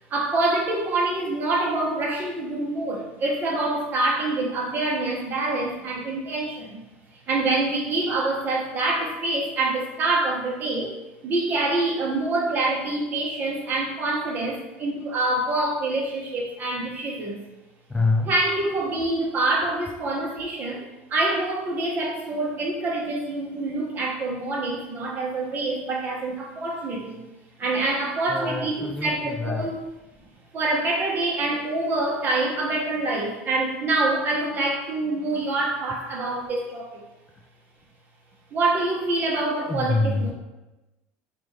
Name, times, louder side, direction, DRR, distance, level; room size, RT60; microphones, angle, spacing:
voice 1, 0.1-6.8 7.3-10.9 11.2-17.4 18.3-20.8 21.1-27.3 27.6-29.7 30.5-37.0 38.5-40.3, right 2 dB, 40° right, -1 dB, 1.1 m, -26 dB
voice 2, 17.9-18.3 28.3-29.7 39.7-40.3, left 3 dB, 15° left, 1 dB, 0.4 m, -25 dB
4.7 x 2.5 x 3.2 m, 1.0 s
supercardioid pair, 110°, 5 cm